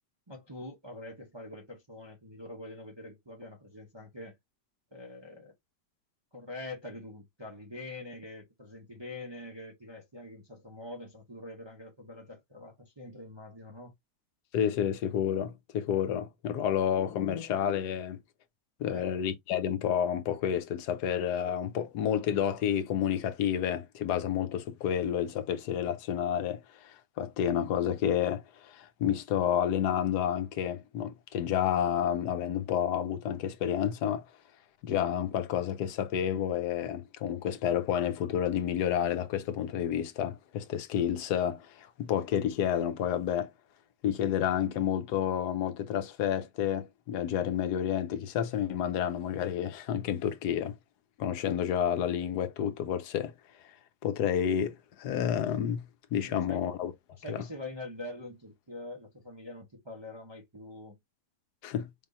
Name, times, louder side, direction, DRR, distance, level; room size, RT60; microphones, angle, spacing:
voice 1, 0.3-4.4 4.9-5.5 6.3-13.9 18.8-19.1 56.2-56.7 57.2-61.0, left 1 dB, 25° right, 0.6 m, -44 dB
voice 2, 14.5-18.2 18.8-34.2 34.8-43.5 44.0-50.8 51.2-53.3 54.0-55.8 56.1-56.9 57.3-57.4 61.6-61.9, left 9 dB, 75° left, 1.2 m, -30 dB
4.8 x 3.7 x 2.6 m
omnidirectional pair, 1.8 m